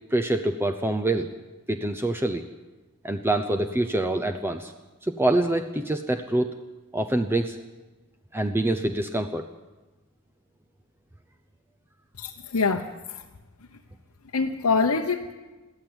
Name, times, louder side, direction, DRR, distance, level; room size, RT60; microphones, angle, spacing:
voice 1, 0.1-1.3 1.7-2.4 3.0-4.7 5.0-6.5 6.9-7.6 8.3-9.5, right 1 dB, 10° right, 7 dB, 0.8 m, -25 dB
voice 2, 12.2-13.2 14.3-15.3, left 4 dB, 85° left, 3 dB, 1.0 m, -25 dB
22.5 x 15.0 x 8.0 m, 1.2 s
head